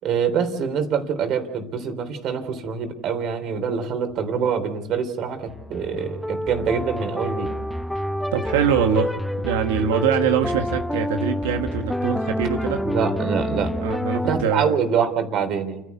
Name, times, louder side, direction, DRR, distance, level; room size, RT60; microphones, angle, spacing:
voice 1, 0.0-7.5 12.8-13.7 14.3-15.8, right 6 dB, 60° right, 7 dB, 3.6 m, -25 dB
sound 1, 5.4-14.4, equal, 5° left, 0.8 m, -27 dB
voice 2, 8.3-12.8 13.8-14.7, right 7 dB, 85° right, 6 dB, 1.3 m, -23 dB
29.5 x 11.0 x 8.4 m, 0.86 s
hypercardioid pair, 80°, 0 cm